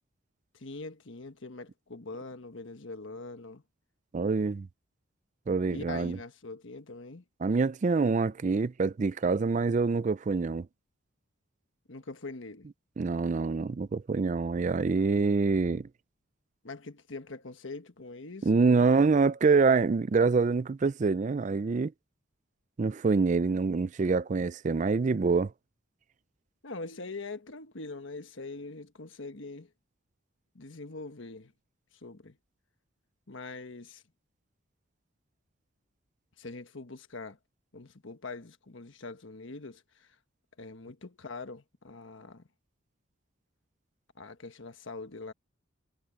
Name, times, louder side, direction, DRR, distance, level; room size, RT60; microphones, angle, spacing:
voice 1, 0.5-3.6 5.7-7.2 11.9-12.7 16.6-18.8 26.6-29.7 30.5-31.5 32.0-32.4 33.3-34.0 36.4-37.4 37.7-40.2 40.6-42.4 44.2-45.3, left 3 dB, 65° left, 1.3 m, -43 dB
voice 2, 4.1-4.7 5.5-6.2 7.4-10.7 13.0-15.9 18.4-21.9 22.8-25.5, right 4 dB, 35° right, 0.3 m, -26 dB
head